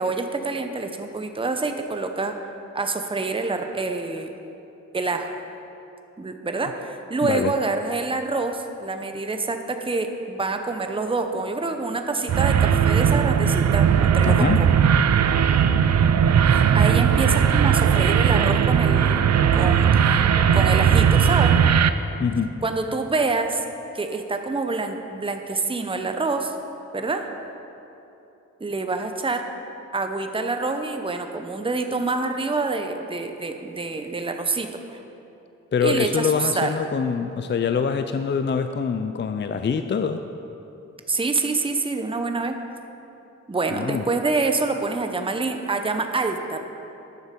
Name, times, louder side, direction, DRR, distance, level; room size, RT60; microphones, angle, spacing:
voice 1, 0.0-2.4 2.7-4.3 4.9-5.4 6.2-14.7 16.5-19.2 19.5-20.2 20.5-21.6 22.6-23.6 23.9-26.5 26.9-27.3 28.6-29.4 29.9-35.0 35.8-36.8 41.1-42.6 43.5-46.6, right 3 dB, 15° right, 6 dB, 0.7 m, -26 dB
sound 1, 12.3-21.9, right 8 dB, 60° right, 0.5 m, -18 dB
voice 2, 14.2-14.6 22.2-22.5 35.7-40.2 43.7-44.0, left 6 dB, 35° left, 8 dB, 0.4 m, -24 dB
9.8 x 7.1 x 5.2 m, 2.9 s
cardioid pair, 60°, 31 cm